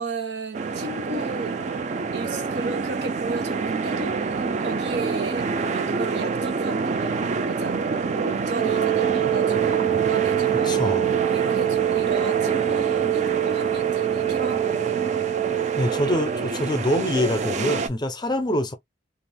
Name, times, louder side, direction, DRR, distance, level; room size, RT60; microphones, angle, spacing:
voice 1, 0.0-1.6 2.1-10.7 11.3-15.0, right 3 dB, 70° right, 0.7 m, -34 dB
sound 1, 0.5-17.9, right 4 dB, 40° right, 0.3 m, -27 dB
Wind instrument woodwind instrument, 8.6-16.4, right 14 dB, 90° right, 1.3 m, -25 dB
voice 2, 10.7-11.1 15.8-18.7, equal, 25° left, 0.5 m, -25 dB
2.4 x 2.4 x 3.4 m
head